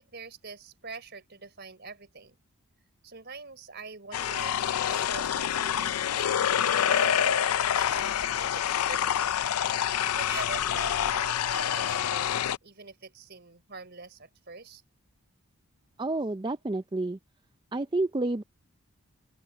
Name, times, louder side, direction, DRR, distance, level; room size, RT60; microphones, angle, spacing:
voice 1, 0.0-2.3 3.0-4.6 4.8-14.8, right 4 dB, 45° right, 4.5 m, -44 dB
sound 1, 4.1-12.6, left 9 dB, 85° left, 0.5 m, -27 dB
voice 2, 16.0-17.2 17.7-18.4, right 2 dB, 20° right, 0.4 m, -29 dB
open air
head